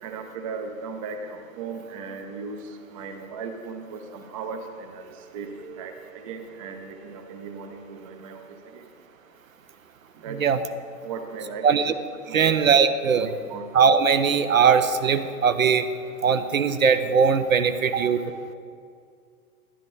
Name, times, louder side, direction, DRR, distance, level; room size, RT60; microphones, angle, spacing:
voice 1, 0.0-2.6 2.9-8.4 8.7-8.8 10.2-10.4 11.0-11.8 12.3-12.5 13.2-13.7 17.9-18.1, right 5 dB, 20° right, 6 dB, 0.6 m, -36 dB
voice 2, 10.3-10.6 11.6-11.9 12.3-13.3 13.7-15.9 16.2-18.2, right 6 dB, 60° right, 10 dB, 0.7 m, -20 dB
11.5 x 10.0 x 3.9 m, 2.3 s
figure-of-eight pair, 115°, 46 cm